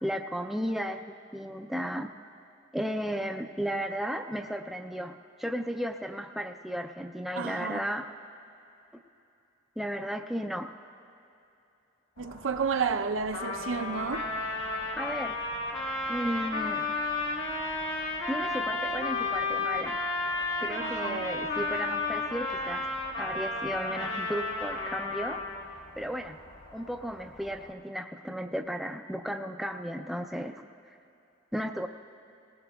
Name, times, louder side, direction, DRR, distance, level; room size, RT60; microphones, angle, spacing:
voice 1, 0.0-2.1 2.7-8.1 9.8-10.7 14.9-15.4 16.1-16.8 18.3-20.0 20.6-22.9 23.2-25.4 26.0-26.4 26.7-30.7 31.5-31.9, equal, ahead, 0.3 m, -34 dB
voice 2, 7.4-7.9 12.2-14.3 20.8-21.2, right 5 dB, 80° right, 0.6 m, -31 dB
sound 1, 12.2-27.7, left 1 dB, 45° left, 1.3 m, -50 dB
Trumpet, 13.3-25.8, left 3 dB, 75° left, 1.7 m, -32 dB
19.0 x 19.0 x 2.3 m
head